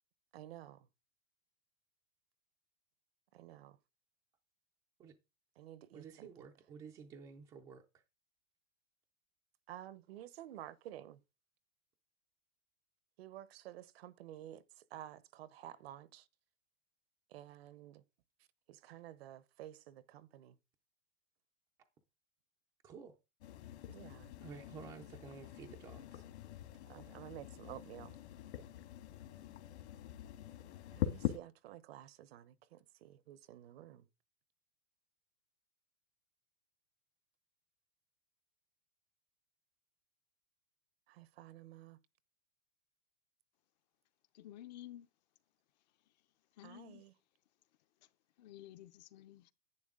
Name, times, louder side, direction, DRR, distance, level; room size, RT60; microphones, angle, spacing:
voice 1, 0.3-0.9 3.3-3.8 5.6-6.3 9.7-11.2 13.2-16.3 17.3-18.0 18.7-20.6 23.9-24.3 26.9-28.2 30.9-34.1 41.1-42.0 46.6-47.1, right 12 dB, 55° right, 0.9 m, -52 dB
voice 2, 5.9-8.0 22.8-23.1 24.4-26.2, right 6 dB, 10° right, 0.5 m, -52 dB
sound 1, 23.4-31.4, left 12 dB, 65° left, 1.8 m, -44 dB
voice 3, 44.3-45.1 46.6-47.0 48.4-49.5, left 12 dB, 35° left, 0.6 m, -52 dB
11.0 x 9.3 x 3.7 m
supercardioid pair, 170°, 36 cm